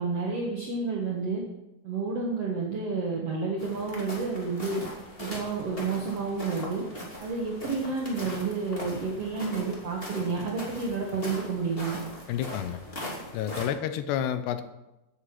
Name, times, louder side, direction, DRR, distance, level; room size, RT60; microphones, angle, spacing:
voice 1, 0.0-1.4 1.8-4.8 5.2-6.8 7.2-12.0, right 4 dB, 65° right, -2 dB, 1.5 m, -30 dB
sound 1, 3.6-13.7, left 1 dB, 20° left, 1.6 m, -40 dB
voice 2, 12.3-12.8 13.3-14.6, left 10 dB, 75° left, 11 dB, 2.7 m, -30 dB
14.5 x 8.1 x 6.0 m, 0.96 s
omnidirectional pair, 5.3 m